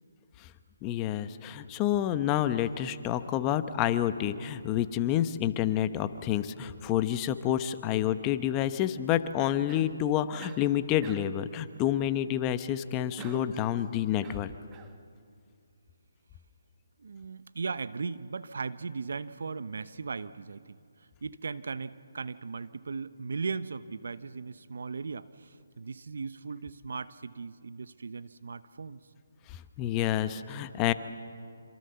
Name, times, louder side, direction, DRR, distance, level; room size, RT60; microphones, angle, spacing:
voice 1, 0.8-14.5 29.5-30.9, left 11 dB, 20° left, 12 dB, 0.9 m, -29 dB
Cough, 9.7-10.0 10.4-10.7 11.0-11.4 13.2-13.6 14.2-15.0, right 8 dB, 20° right, 1.2 m, -48 dB
voice 2, 17.0-29.0, right 4 dB, 70° right, 14 dB, 0.9 m, -38 dB
26.5 x 26.0 x 6.9 m, 2.3 s
hypercardioid pair, 155°, 0 cm